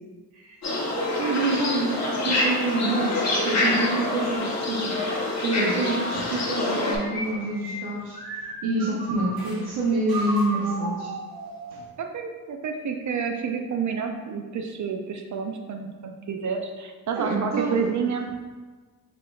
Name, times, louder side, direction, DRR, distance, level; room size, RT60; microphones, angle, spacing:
sound 1, 0.6-7.0, left 2 dB, 45° left, 1.0 m, -26 dB
voice 1, 0.9-11.1 11.7-11.8 17.1-17.8, right 2 dB, 85° right, -3 dB, 0.7 m, -27 dB
sound 2, 6.7-9.6 10.1-11.9, right 2 dB, 65° right, 1.2 m, -34 dB
voice 2, 12.0-18.3, right 6 dB, 50° right, 4 dB, 0.5 m, -29 dB
4.4 x 4.1 x 2.3 m, 1.4 s
cardioid pair, 95°, 38 cm